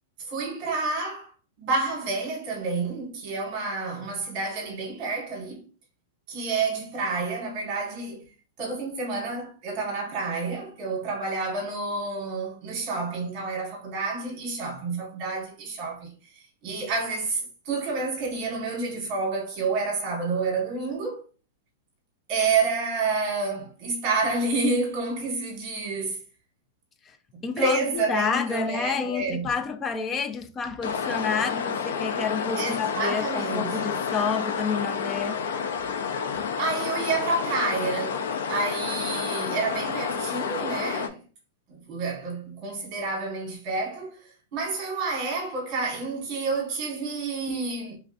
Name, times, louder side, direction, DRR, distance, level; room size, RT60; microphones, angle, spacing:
voice 1, 0.3-1.3 1.6-5.6 6.3-8.2 8.6-21.2 22.3-26.2 27.3-29.5 32.6-33.9 36.6-41.2 41.7-48.0, right 3 dB, 35° right, 1.5 m, -29 dB
voice 2, 27.4-35.4 36.3-36.4, left 5 dB, 15° left, 0.3 m, -29 dB
sound 1, 30.8-41.1, left 6 dB, 85° left, 0.5 m, -30 dB
3.5 x 3.2 x 2.5 m
supercardioid pair, 170°, 0 cm